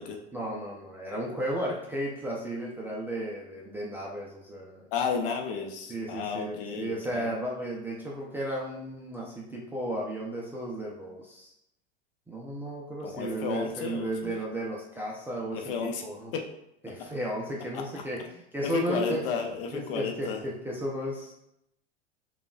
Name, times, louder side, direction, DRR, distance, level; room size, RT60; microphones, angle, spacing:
voice 1, 0.3-4.9 5.9-11.5 12.3-16.3 16.8-19.3 19.7-21.3, right 1 dB, 5° right, -4 dB, 0.4 m, -34 dB
voice 2, 4.9-7.2 13.0-14.3 15.5-16.0 16.3-16.4 17.7-17.8 18.6-20.4, left 6 dB, 55° left, 3 dB, 0.8 m, -32 dB
6.7 x 2.4 x 2.3 m, 0.81 s
figure-of-eight pair, 90°, 34 cm